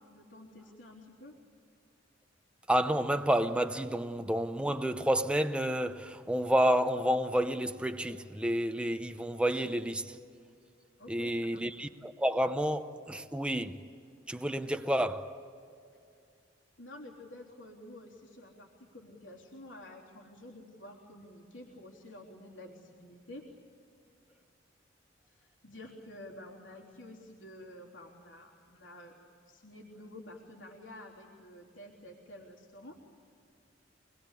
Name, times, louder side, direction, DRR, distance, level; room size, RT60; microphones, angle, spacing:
voice 1, 0.1-1.4 11.0-11.6 16.8-23.5 25.3-33.0, left 1 dB, 85° left, 3.6 m, -50 dB
voice 2, 2.7-10.2 11.1-13.7 14.3-15.3, equal, 5° right, 0.8 m, -30 dB
26.0 x 21.0 x 8.4 m
head